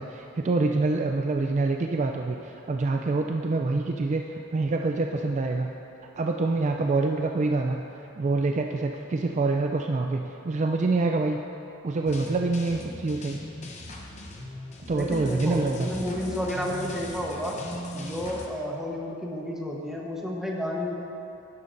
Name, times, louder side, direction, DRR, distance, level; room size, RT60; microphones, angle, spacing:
voice 1, 0.0-5.7 6.2-7.8 8.2-11.4 11.8-13.4 14.9-15.9, right 3 dB, 35° right, 3 dB, 0.3 m, -26 dB
sound 1, 12.1-18.5, left 1 dB, 35° left, 0.9 m, -39 dB
voice 2, 14.9-17.6 17.9-20.9, left 1 dB, ahead, -2 dB, 1.0 m, -31 dB
12.0 x 10.5 x 2.6 m, 2.9 s
head